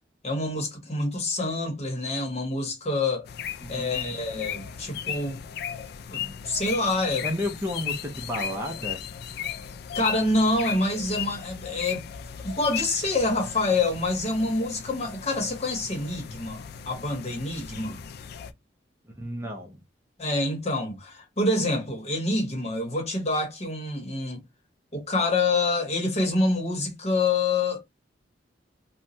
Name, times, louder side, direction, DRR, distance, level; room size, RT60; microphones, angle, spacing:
voice 1, 0.2-3.3 3.7-5.4 6.1-7.3 9.9-12.0 12.4-18.0 20.2-24.4 24.9-27.8, left 2 dB, 40° left, 1.1 m, -27 dB
sound 1, 3.2-18.5, left 8 dB, 60° left, 0.3 m, -36 dB
voice 2, 3.6-4.2 7.2-9.0 19.2-19.8, left 1 dB, 15° right, 0.5 m, -32 dB
3.0 x 2.2 x 2.6 m
head